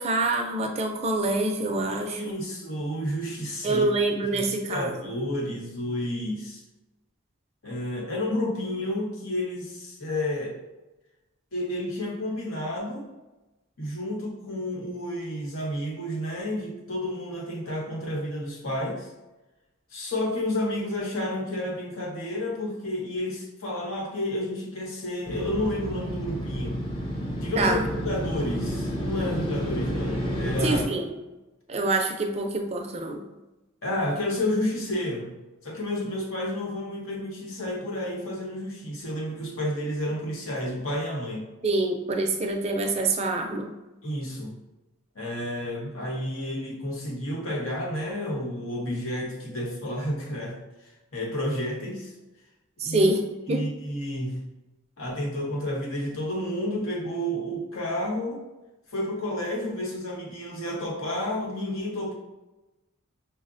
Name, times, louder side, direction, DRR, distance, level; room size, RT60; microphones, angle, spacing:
voice 1, 0.0-2.4 3.6-5.1 27.6-27.9 30.6-31.1 31.7-33.2 41.6-43.7 52.8-53.2 53.5-53.7, right 2 dB, 30° right, 3 dB, 0.4 m, -26 dB
voice 2, 1.9-3.8 4.3-6.6 7.6-10.6 11.5-13.0 13.8-19.1 19.9-26.8 27.4-30.9 33.8-35.3 35.6-41.5 44.0-44.6 45.1-52.1 52.8-53.1 53.5-54.4 55.0-58.4 58.9-62.1, left 1 dB, 80° left, -2 dB, 1.0 m, -31 dB
Motorcycle, 25.3-30.9, equal, 25° left, 0.5 m, -30 dB
5.7 x 2.1 x 2.5 m, 1.0 s
head